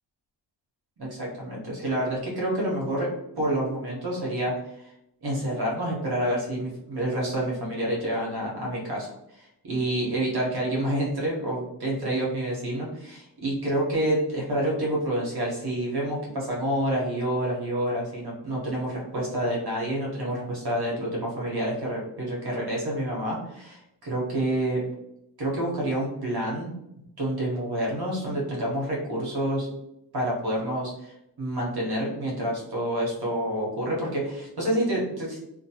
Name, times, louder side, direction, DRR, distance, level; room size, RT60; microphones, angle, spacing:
voice 1, 1.0-4.9 5.2-24.8 25.4-26.7 27.2-29.7 30.1-31.1 31.4-35.4, right 1 dB, 65° right, -4 dB, 1.2 m, -28 dB
2.4 x 2.3 x 2.8 m, 0.81 s
cardioid pair, 50°, 41 cm